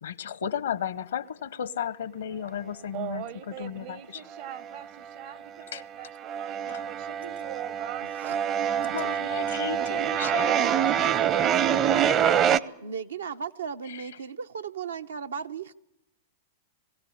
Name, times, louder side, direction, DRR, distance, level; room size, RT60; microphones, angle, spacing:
voice 1, 0.0-4.3 5.7-5.8 6.7-6.9 8.9-10.9 11.4-11.5 11.7-12.5 13.9-14.1, left 8 dB, 75° left, 0.8 m, -35 dB
voice 2, 2.9-8.1 9.9-10.0, right 11 dB, 55° right, 1.0 m, -41 dB
sound 1, 4.3-5.1 5.4-12.6, right 9 dB, 35° right, 0.7 m, -26 dB
voice 3, 8.0-8.4 9.2-9.5 9.8-12.2 12.8-15.7, right 6 dB, 75° right, 0.8 m, -38 dB
21.0 x 16.5 x 9.8 m
hypercardioid pair, 105°, 0 cm